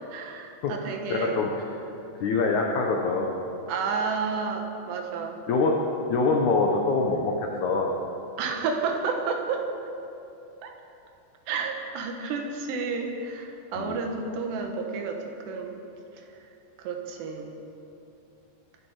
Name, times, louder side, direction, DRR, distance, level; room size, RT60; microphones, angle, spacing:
voice 1, 0.1-1.4 3.7-5.4 8.4-9.7 10.6-10.7 11.5-15.8 16.1-16.4 16.8-17.5, right 5 dB, 75° right, 3 dB, 3.3 m, -31 dB
voice 2, 1.1-1.5 2.2-3.3 5.5-5.7 6.1-7.9 13.8-14.0, left 3 dB, 90° left, 0 dB, 1.6 m, -24 dB
22.0 x 11.5 x 4.8 m, 2.8 s
omnidirectional pair, 5.1 m